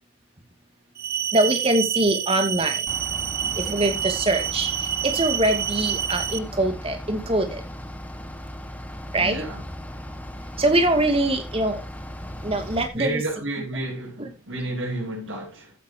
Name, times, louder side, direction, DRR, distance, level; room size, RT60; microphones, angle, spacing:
sound 1, 1.0-6.4, right 9 dB, 50° right, 1.0 m, -28 dB
voice 1, 1.3-2.8 3.6-4.7 5.0-7.6 9.1-9.5 10.6-11.8 12.4-13.2 14.2-14.3, right 1 dB, 30° right, 2.5 m, -23 dB
Bus / Idling, 2.9-12.9, equal, 10° left, 1.6 m, -37 dB
voice 2, 9.2-9.6 12.9-15.7, right 2 dB, 80° right, 7.3 m, -31 dB
15.5 x 9.0 x 2.9 m
head